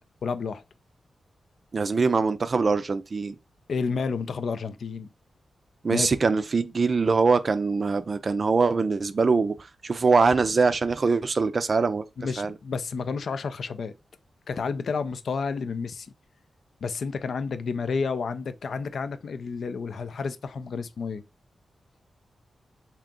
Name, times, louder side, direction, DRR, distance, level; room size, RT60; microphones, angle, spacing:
voice 1, 0.2-0.6 3.7-5.1 5.9-6.1 12.2-13.9 14.5-16.1 16.8-21.2, left 5 dB, 70° left, 0.4 m, -30 dB
voice 2, 1.7-3.4 5.8-12.0 12.4-12.5, right 4 dB, 45° right, 0.4 m, -23 dB
3.7 x 2.8 x 3.5 m
wide cardioid pair, 105°, 0 cm